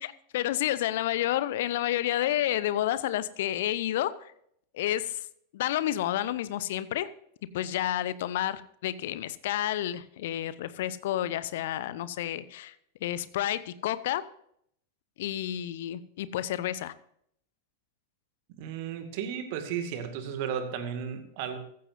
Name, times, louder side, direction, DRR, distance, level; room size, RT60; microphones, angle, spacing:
voice 1, 0.0-4.3 4.7-5.2 5.5-7.1 7.5-12.7 13.0-14.2 15.2-16.9, left 13 dB, 55° left, 16 dB, 0.8 m, -30 dB
voice 2, 18.6-21.6, right 8 dB, 45° right, 7 dB, 2.2 m, -34 dB
15.0 x 14.5 x 2.7 m, 0.69 s
figure-of-eight pair, 90°, 0 cm